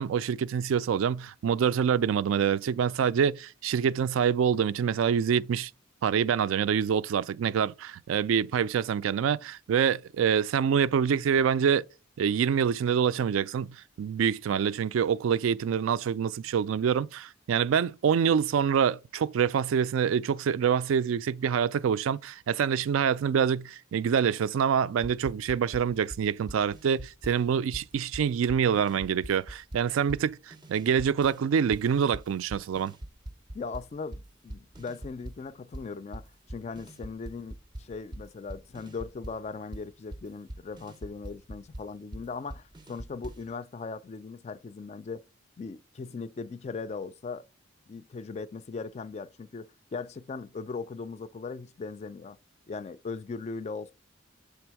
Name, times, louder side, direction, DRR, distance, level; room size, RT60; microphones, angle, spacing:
voice 1, 0.0-5.7 6.0-11.8 12.2-32.9, right 7 dB, 85° right, 0.3 m, -26 dB
sound 1, 25.0-27.5 27.7-31.4 31.7-35.5 35.7-43.5, right 1 dB, 20° right, 0.5 m, -43 dB
voice 2, 33.5-45.2 45.6-47.4 47.9-52.4 52.7-53.9, left 4 dB, 35° left, 0.3 m, -39 dB
6.9 x 3.4 x 4.6 m
head